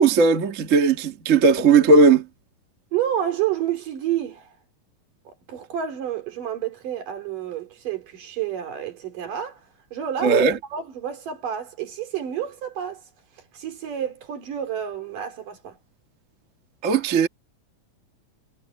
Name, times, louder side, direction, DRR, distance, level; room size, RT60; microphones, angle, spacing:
voice 1, 0.0-2.2 10.2-10.6 16.8-17.3, right 4 dB, 40° right, 1.1 m, -17 dB
voice 2, 2.9-4.5 5.3-9.6 9.9-10.4 10.7-13.0 13.5-15.8, right 10 dB, 70° right, 4.6 m, -29 dB
omnidirectional pair, 4.0 m